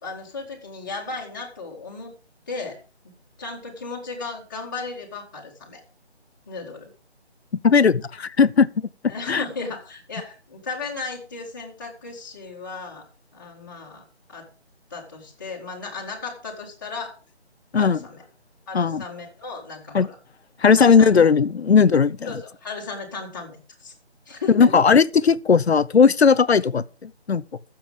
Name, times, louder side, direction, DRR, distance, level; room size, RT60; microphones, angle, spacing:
voice 1, 0.0-2.1 2.5-2.8 3.4-5.8 6.5-6.9 9.1-13.1 13.3-14.5 14.9-17.2 17.8-18.2 18.7-20.2 20.7-21.1 22.3-23.9 24.3-24.7, left 4 dB, 20° left, 2.0 m, -35 dB
voice 2, 7.6-8.9 9.3-9.4 17.7-18.0 18.7-19.0 19.9-20.1 20.6-22.3 24.5-27.4, left 6 dB, 70° left, 0.7 m, -17 dB
14.5 x 7.3 x 5.1 m
figure-of-eight pair, 170°, 33 cm